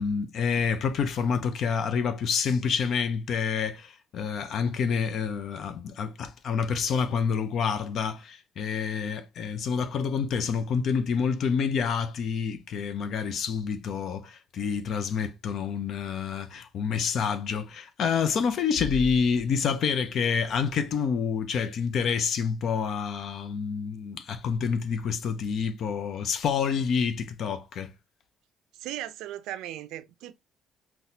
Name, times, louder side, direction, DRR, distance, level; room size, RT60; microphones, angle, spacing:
voice 1, 0.0-27.9, left 6 dB, 60° left, 0.5 m, -28 dB
voice 2, 28.7-30.3, right 13 dB, 80° right, 0.4 m, -37 dB
4.0 x 2.2 x 2.6 m
supercardioid pair, 80°, 0 cm